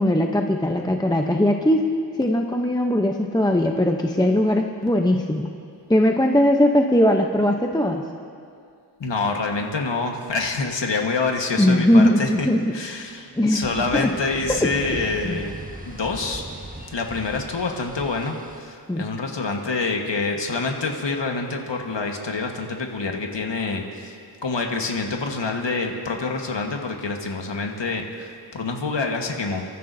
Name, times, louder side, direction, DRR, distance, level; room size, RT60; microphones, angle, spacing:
voice 1, 0.0-1.8 2.2-5.5 5.9-8.0 11.6-12.6 13.4-13.7 13.9-14.1 14.5-14.7 15.2-15.4 18.9-19.1, left 1 dB, 10° left, 2 dB, 0.8 m, -19 dB
voice 2, 9.0-15.5 15.9-16.4 16.9-24.1 24.4-29.6, left 3 dB, 75° left, 2 dB, 1.5 m, -26 dB
sound 1, 13.6-18.6, right 1 dB, 20° right, 1.3 m, -38 dB
29.0 x 14.0 x 2.7 m, 2.3 s
wide cardioid pair, 80°, 43 cm